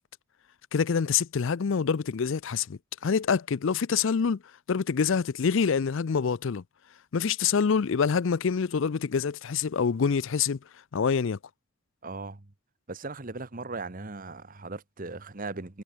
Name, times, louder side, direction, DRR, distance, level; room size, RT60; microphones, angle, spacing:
voice 1, 0.7-4.4 4.7-6.6 7.1-10.6 10.9-11.4, left 6 dB, 60° left, 0.4 m, -26 dB
voice 2, 12.0-12.5 12.9-15.8, right 3 dB, 40° right, 1.2 m, -38 dB
head